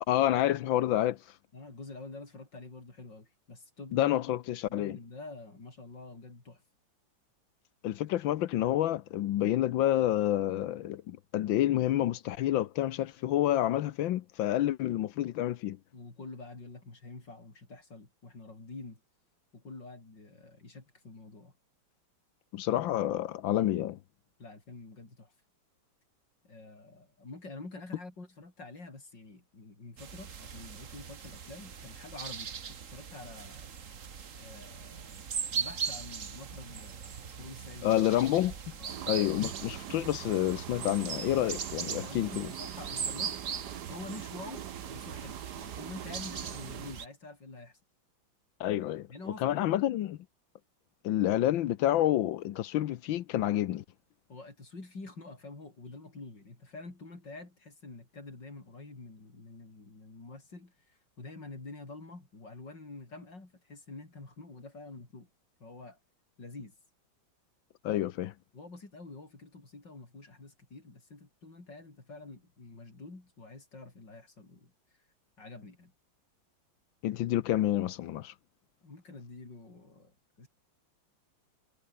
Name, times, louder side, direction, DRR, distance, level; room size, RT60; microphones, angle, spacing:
voice 1, 0.1-1.2 3.9-5.0 7.8-15.8 22.5-24.0 37.8-38.5 39.1-42.5 48.6-49.1 49.4-50.2 51.0-53.8 67.8-68.3 77.0-78.3, left 13 dB, 80° left, 1.6 m, -28 dB
voice 2, 1.5-4.2 4.7-6.6 15.9-19.0 19.5-21.5 24.4-25.3 26.4-33.7 34.4-35.2 35.5-38.0 38.8-39.0 42.0-43.4 43.9-47.8 49.1-49.8 54.3-65.3 65.6-66.0 66.4-66.8 68.5-74.7 75.4-75.9 78.8-80.5, left 3 dB, 65° left, 5.9 m, -47 dB
sound 1, 30.0-47.1, right 7 dB, 45° right, 1.6 m, -40 dB
sound 2, 38.9-46.9, right 11 dB, 65° right, 1.4 m, -43 dB
omnidirectional pair, 2.1 m